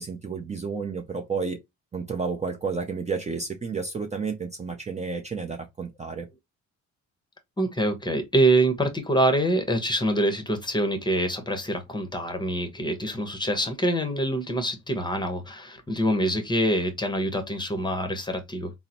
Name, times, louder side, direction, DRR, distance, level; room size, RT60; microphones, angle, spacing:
voice 1, 0.0-1.6 1.9-6.3, right 5 dB, 25° right, 0.6 m, -31 dB
voice 2, 7.6-18.7, right 1 dB, 15° left, 0.9 m, -25 dB
3.8 x 2.1 x 2.8 m
cardioid pair, 90°, 30 cm